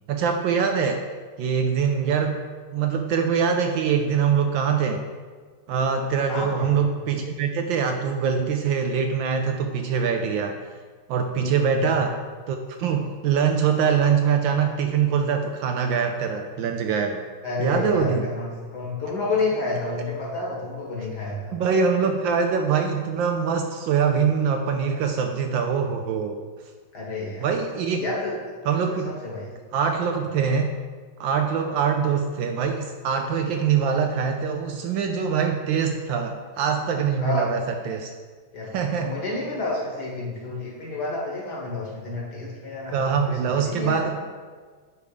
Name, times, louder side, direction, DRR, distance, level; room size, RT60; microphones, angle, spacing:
voice 1, 0.1-1.0 1.4-2.4 2.7-5.0 5.7-10.6 11.1-12.2 12.5-17.2 17.6-18.3 21.5-26.4 27.4-28.0 28.7-29.1 29.7-30.7 31.2-38.1 38.7-39.2 42.9-44.2, right 6 dB, 75° right, 5 dB, 1.2 m, -23 dB
voice 2, 6.3-6.8 11.6-12.0 17.4-21.6 26.9-27.5 28.0-28.3 29.0-29.5 37.2-37.6 38.5-44.1, left 3 dB, 55° left, -3 dB, 2.1 m, -30 dB
9.3 x 3.6 x 5.0 m, 1.5 s
omnidirectional pair, 2.3 m